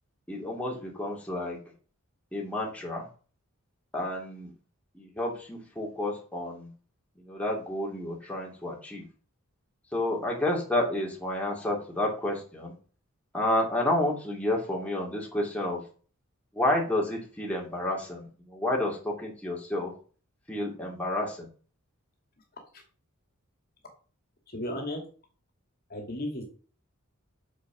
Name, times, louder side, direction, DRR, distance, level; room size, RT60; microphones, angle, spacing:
voice 1, 0.3-1.6 2.3-3.1 3.9-4.5 4.9-6.7 7.2-9.0 9.9-12.7 13.3-15.8 16.5-19.9 20.5-21.5, left 1 dB, 5° left, -2 dB, 2.7 m, -30 dB
voice 2, 24.5-25.0 25.9-26.5, left 1 dB, 45° left, 2 dB, 2.4 m, -34 dB
6.9 x 6.7 x 6.1 m, 0.39 s
head